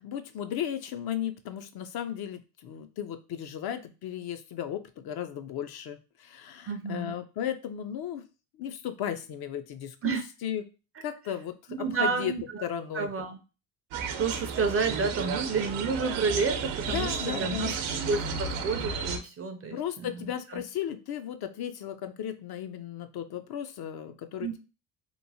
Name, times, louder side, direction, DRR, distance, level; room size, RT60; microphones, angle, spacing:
voice 1, 0.0-8.2 8.5-10.6 11.0-12.3 12.6-13.1 16.9-18.1 19.7-24.6, left 10 dB, 50° left, 9 dB, 0.5 m, -35 dB
voice 2, 6.7-7.1 10.0-10.2 11.7-12.6 12.9-13.4 14.2-17.7 18.1-20.2 20.5-20.6 24.4-24.6, right 4 dB, 30° right, 7 dB, 0.4 m, -30 dB
sound 1, 13.9-19.2, right 5 dB, 75° right, 0.7 m, -33 dB
3.0 x 2.1 x 2.6 m, 0.32 s
supercardioid pair, 70°, 49 cm